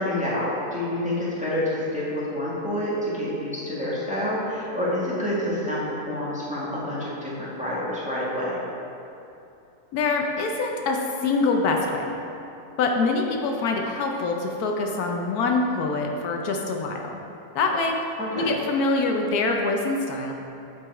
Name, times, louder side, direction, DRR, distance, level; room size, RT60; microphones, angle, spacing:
voice 1, 0.0-8.6 18.2-18.5, left 1 dB, 5° right, -8 dB, 1.5 m, -28 dB
voice 2, 9.9-12.0 12.8-17.0 17.5-17.9 18.3-20.3, left 3 dB, 75° left, 2 dB, 1.1 m, -24 dB
8.9 x 4.6 x 4.7 m, 2.8 s
omnidirectional pair, 1.7 m